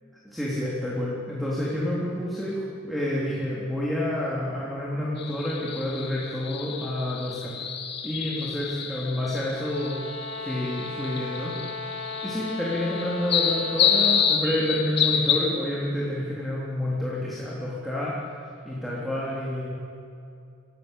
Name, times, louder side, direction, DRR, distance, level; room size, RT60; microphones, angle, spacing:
voice 1, 0.3-7.5 8.0-10.0 10.4-11.5 12.2-18.3 18.6-19.7, left 1 dB, ahead, -7 dB, 3.6 m, -29 dB
sound 1, 5.2-15.5, left 7 dB, 50° left, 2.4 m, -28 dB
sound 2, 9.5-14.2, left 3 dB, 30° right, 4.3 m, -36 dB
29.0 x 17.5 x 8.4 m, 2.6 s
head